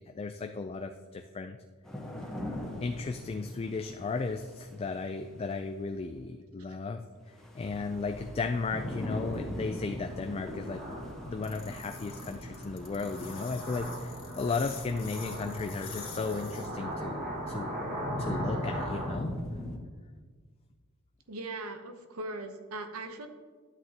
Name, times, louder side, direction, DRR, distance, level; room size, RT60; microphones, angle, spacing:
voice 1, 0.0-1.6 2.8-7.0 7.5-10.8 11.3-17.7 18.2-19.3, left 4 dB, 25° left, 6 dB, 0.3 m, -35 dB
sound 1, 1.8-5.0 7.3-13.6 16.3-16.4 16.9-19.8, left 1 dB, 5° left, 1.3 m, -40 dB
sound 2, 7.6-19.2, equal, 40° right, 1.9 m, -40 dB
sound 3, 11.4-16.7, left 8 dB, 45° left, 1.9 m, -47 dB
voice 2, 21.3-23.3, right 2 dB, 85° right, 7 dB, 0.9 m, -39 dB
12.0 x 8.0 x 2.9 m, 1.5 s
head